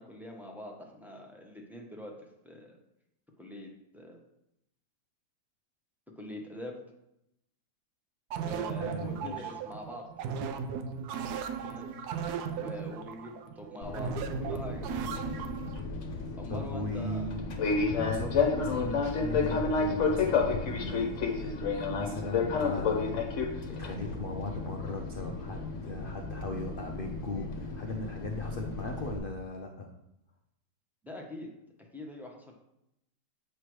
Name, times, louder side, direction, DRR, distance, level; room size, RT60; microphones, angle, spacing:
voice 1, 0.0-2.1 2.4-2.8 3.4-4.2 6.2-6.7 8.4-10.0 11.6-11.9 12.5-14.8 16.4-17.2 31.0-31.5 31.9-32.5, left 1 dB, ahead, -1 dB, 0.6 m, -43 dB
sound 1, 8.3-15.8, right 6 dB, 70° right, 1.1 m, -36 dB
voice 2, 8.8-9.5 16.5-29.9, left 2 dB, 75° left, 2 dB, 0.5 m, -38 dB
Fixed-wing aircraft airplane, 13.8-29.2, left 4 dB, 50° left, 1.1 m, -32 dB
8.2 x 3.3 x 6.1 m, 0.83 s
omnidirectional pair, 1.9 m